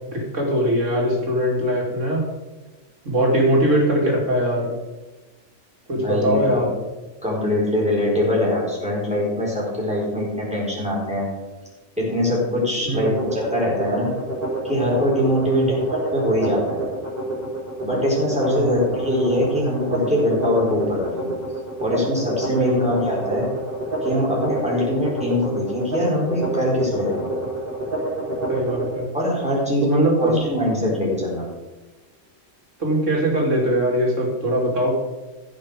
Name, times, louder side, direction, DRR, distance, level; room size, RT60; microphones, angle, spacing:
voice 1, 0.1-2.2 3.0-4.7 5.9-6.7 12.9-13.1 15.4-15.7 18.4-18.7 22.6-22.9 28.5-29.1 29.8-30.4 32.8-34.9, equal, 70° right, -1 dB, 3.0 m, -21 dB
voice 2, 5.9-6.4 7.2-11.3 12.0-14.1 14.6-16.8 17.8-21.3 21.8-23.5 24.0-27.3 29.1-31.5, left 1 dB, 5° right, -6 dB, 4.5 m, -22 dB
sound 1, 12.9-28.9, right 2 dB, 30° right, 4.4 m, -28 dB
15.5 x 6.5 x 5.1 m, 1.1 s
omnidirectional pair, 1.3 m